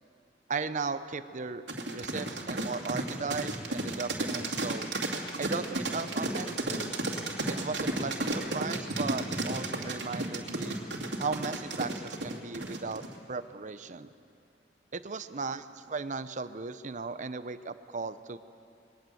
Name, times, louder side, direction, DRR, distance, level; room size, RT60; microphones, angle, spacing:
voice 1, 0.5-1.6 1.9-4.9 5.4-7.0 7.5-10.8 11.2-14.1 14.9-18.4, right 4 dB, 45° right, 12 dB, 0.7 m, -36 dB
sound 1, 1.7-13.1, right 2 dB, 75° right, 2.6 m, -33 dB
22.0 x 19.5 x 7.8 m, 2.5 s
head